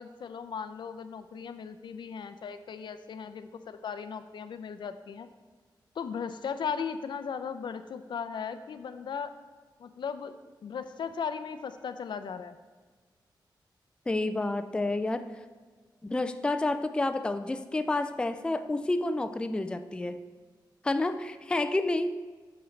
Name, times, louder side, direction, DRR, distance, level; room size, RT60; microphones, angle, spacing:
voice 1, 0.0-5.3 6.0-9.3 9.8-10.3 10.6-12.6, left 6 dB, 75° left, 11 dB, 0.5 m, -37 dB
voice 2, 14.1-15.3 16.0-20.2 20.8-22.1, left 2 dB, 10° left, 10 dB, 0.3 m, -29 dB
8.6 x 7.0 x 3.2 m, 1.5 s
wide cardioid pair, 120°, 8 cm